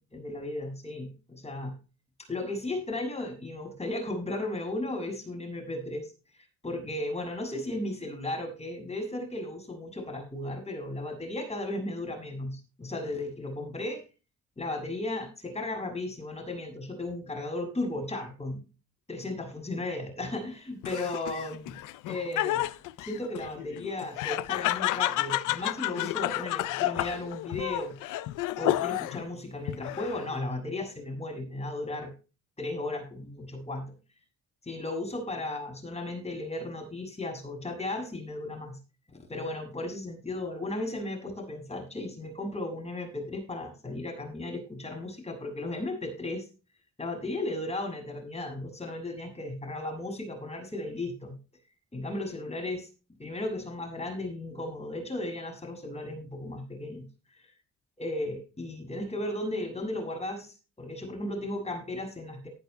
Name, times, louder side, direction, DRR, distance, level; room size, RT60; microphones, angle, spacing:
voice 1, 0.0-1.8 2.3-6.1 6.6-14.0 14.6-18.6 19.1-21.6 22.1-22.7 23.0-27.9 28.6-32.1 32.6-33.9 34.6-38.8 39.1-46.5 47.0-51.4 51.9-52.9 53.2-57.1 57.3-57.5 58.0-62.5, left 2 dB, 20° left, 1 dB, 7.3 m, -35 dB
Laughter, 20.8-29.3 29.7-30.4, left 16 dB, 90° left, 0.6 m, -31 dB
19.0 x 11.0 x 2.2 m, 0.33 s
cardioid pair, 90°, 30 cm